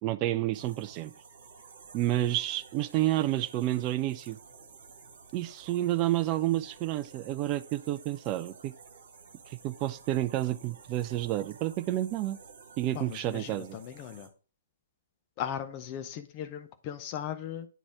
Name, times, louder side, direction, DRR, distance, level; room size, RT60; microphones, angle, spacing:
voice 1, 0.0-1.1 1.9-4.4 5.3-8.7 9.5-12.4 12.8-13.8, right 14 dB, 30° right, 0.4 m, -30 dB
sound 1, 0.5-14.3, right 5 dB, 55° right, 1.4 m, -53 dB
voice 2, 12.9-14.3 15.4-17.7, left 9 dB, 30° left, 0.6 m, -38 dB
9.1 x 4.0 x 3.6 m
figure-of-eight pair, 120°, 0 cm